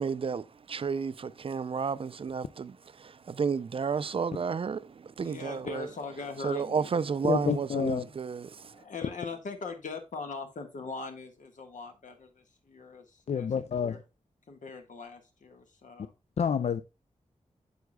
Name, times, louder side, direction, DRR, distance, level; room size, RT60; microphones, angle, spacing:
voice 1, 0.0-5.9 6.4-8.8, right 6 dB, 45° right, 0.4 m, -32 dB
voice 2, 5.2-6.9 8.6-14.0 14.5-16.1, left 4 dB, 85° left, 1.4 m, -41 dB
voice 3, 7.2-8.0 13.3-13.9 16.4-16.8, left 7 dB, 60° left, 0.4 m, -28 dB
9.3 x 6.9 x 2.2 m
wide cardioid pair, 115°, 13 cm